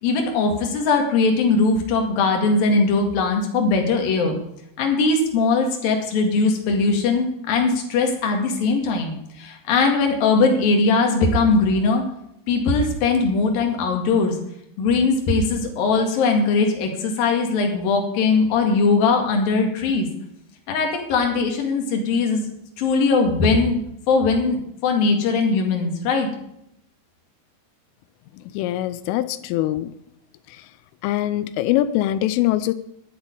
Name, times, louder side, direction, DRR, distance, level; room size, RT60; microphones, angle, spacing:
voice 1, 0.0-4.3 4.8-12.0 12.5-14.4 14.8-20.1 20.7-22.5 22.8-23.8 24.1-26.3, left 4 dB, 55° left, 3 dB, 3.2 m, -20 dB
voice 2, 28.5-29.9 30.5-30.6 31.0-32.7, left 14 dB, 80° left, 14 dB, 3.0 m, -23 dB
11.5 x 7.9 x 9.7 m, 0.76 s
omnidirectional pair, 5.9 m